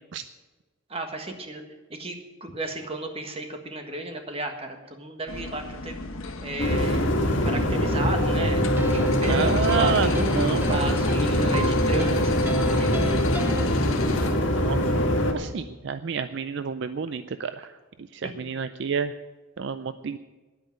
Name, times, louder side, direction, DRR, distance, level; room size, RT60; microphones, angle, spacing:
voice 1, 0.9-1.6 1.9-6.0 6.4-7.1 7.4-8.6 8.9-10.2 10.7-12.9 18.2-18.3, right 2 dB, 25° right, 5 dB, 1.5 m, -33 dB
sound 1, 5.3-14.3, left 3 dB, 75° left, 1.3 m, -35 dB
sound 2, 6.6-15.3, left 1 dB, 60° left, 2.0 m, -23 dB
sound 3, 8.6-13.7, equal, 10° right, 0.9 m, -33 dB
voice 2, 9.2-10.8 14.0-17.7 18.1-19.1 19.6-20.2, right 6 dB, 55° right, 12 dB, 0.4 m, -29 dB
10.5 x 9.0 x 9.2 m, 1.2 s
head